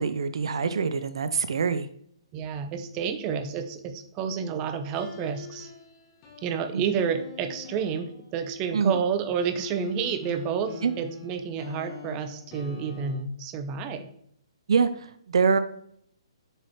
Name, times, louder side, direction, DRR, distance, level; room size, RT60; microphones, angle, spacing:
voice 1, 0.0-1.9 6.7-6.8 8.7-9.0 10.8-10.9 14.7-15.6, right 5 dB, 65° right, 12 dB, 0.5 m, -25 dB
voice 2, 2.3-5.7 6.4-14.1, right 7 dB, 25° right, 8 dB, 0.6 m, -30 dB
sound 1, 4.9-8.5 9.4-13.2, left 5 dB, 35° left, 1.7 m, -43 dB
7.5 x 4.8 x 3.1 m, 0.67 s
hypercardioid pair, 145°, 3 cm